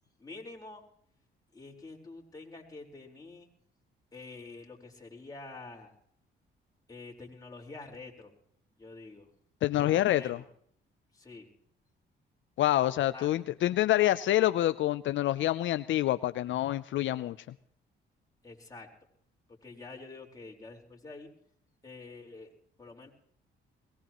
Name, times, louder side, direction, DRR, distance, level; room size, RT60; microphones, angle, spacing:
voice 1, 0.2-0.8 1.5-3.5 4.1-5.9 6.9-8.3 8.8-9.3 9.8-10.4 11.1-11.5 13.1-13.3 18.4-18.9 19.6-21.3 21.8-22.5 22.8-23.1, left 3 dB, 20° left, -1 dB, 4.5 m, -47 dB
voice 2, 9.6-10.4 12.6-17.4, left 14 dB, 75° left, 13 dB, 0.6 m, -27 dB
22.5 x 19.5 x 3.0 m, 0.64 s
cardioid pair, 90°, 20 cm